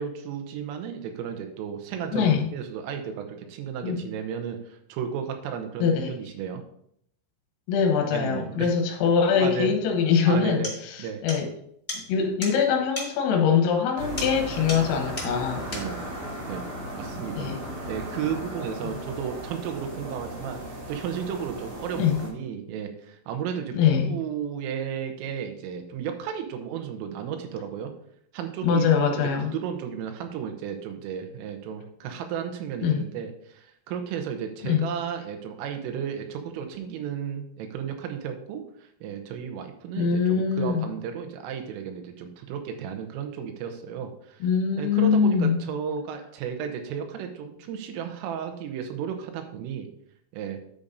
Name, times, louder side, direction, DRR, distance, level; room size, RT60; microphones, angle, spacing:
voice 1, 0.0-6.6 8.1-8.7 9.4-9.8 10.2-10.7 11.0-11.2 15.7-16.1 16.5-16.6 16.9-27.9 28.3-44.5 44.8-49.9 50.3-50.6, right 8 dB, 80° right, 5 dB, 3.4 m, -34 dB
voice 2, 2.1-2.5 3.8-4.0 5.8-6.1 7.7-11.5 12.1-15.7 17.4-17.6 22.0-22.2 23.7-24.2 28.6-29.5 32.8-33.0 34.6-34.9 40.0-40.8 44.4-45.6, left 6 dB, 80° left, 2 dB, 3.9 m, -23 dB
sound 1, 10.1-10.2 10.6-10.8 11.3-11.4 11.9-12.0 12.4-12.6 12.9-13.1 14.2-14.4 14.7-14.9 15.2-15.3 15.7-15.9, left 1 dB, 20° left, 1.2 m, -34 dB
sound 2, 14.0-22.3, equal, 50° right, 3.7 m, -36 dB
10.0 x 8.5 x 2.6 m, 0.70 s
omnidirectional pair, 6.0 m